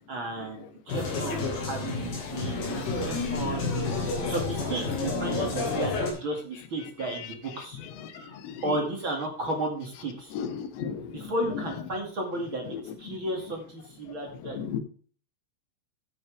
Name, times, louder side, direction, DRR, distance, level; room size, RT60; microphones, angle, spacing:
voice 1, 0.1-7.8 8.1-8.3 8.6-10.3 11.1-14.6, right 1 dB, 40° right, 1 dB, 1.9 m, -34 dB
sound 1, 0.9-6.1, left 3 dB, 50° left, 4.8 m, -30 dB
voice 2, 10.3-11.3 12.7-12.8 13.1-13.2 14.5-14.8, left 7 dB, 70° left, 9 dB, 3.3 m, -35 dB
11.5 x 9.1 x 3.4 m, 0.43 s
omnidirectional pair, 5.6 m